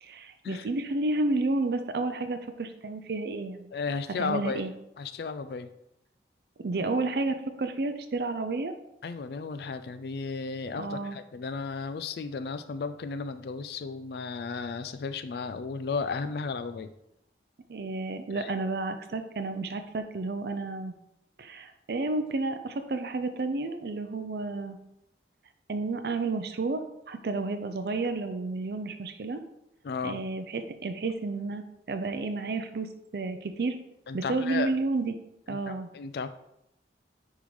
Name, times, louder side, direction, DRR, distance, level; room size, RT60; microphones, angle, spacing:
voice 1, 0.0-3.7 4.2-4.7 6.6-8.7 10.7-11.2 17.7-20.9 21.4-24.8 25.7-29.4 30.0-33.8 34.1-35.1 35.5-35.9, right 3 dB, 60° right, 8 dB, 0.4 m, -31 dB
voice 2, 3.7-4.7 5.0-5.7 9.0-16.9 18.3-18.5 29.8-30.2 34.1-34.7 35.5-36.3, left 4 dB, 60° left, 11 dB, 0.3 m, -34 dB
9.8 x 3.6 x 3.1 m, 0.83 s
head